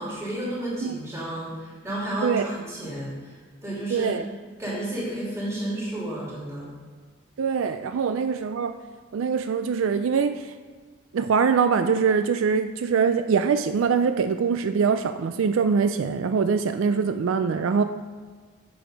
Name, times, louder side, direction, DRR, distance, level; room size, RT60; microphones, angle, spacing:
voice 1, 0.0-3.4 3.6-4.1 4.6-6.7, right 1 dB, 15° right, -7 dB, 2.8 m, -31 dB
voice 2, 3.9-4.3 7.4-8.7 9.1-10.5 11.1-17.8, right 6 dB, 75° right, 9 dB, 0.4 m, -23 dB
7.7 x 7.0 x 5.1 m, 1.5 s
head